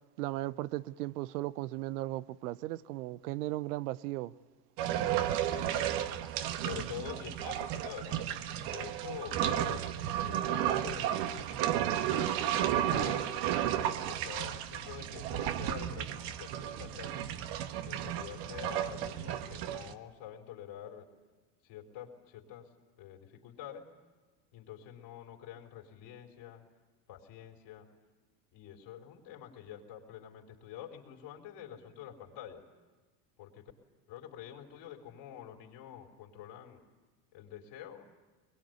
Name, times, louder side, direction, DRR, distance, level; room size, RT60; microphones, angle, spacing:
voice 1, 0.2-4.3, right 17 dB, 80° right, 0.8 m, -36 dB
sound 1, 4.8-19.9, right 11 dB, 60° right, 1.4 m, -33 dB
voice 2, 5.5-6.2 6.5-8.3 8.7-9.9 10.2-11.5 12.1-13.3 13.9-17.3 17.8-21.1 21.6-22.7 23.0-23.9 24.5-26.6 27.1-27.9 28.5-32.7 33.4-33.7 34.1-36.9 37.3-38.1, left 10 dB, 60° left, 4.3 m, -47 dB
22.5 x 21.5 x 9.5 m
hypercardioid pair, 90°, 46 cm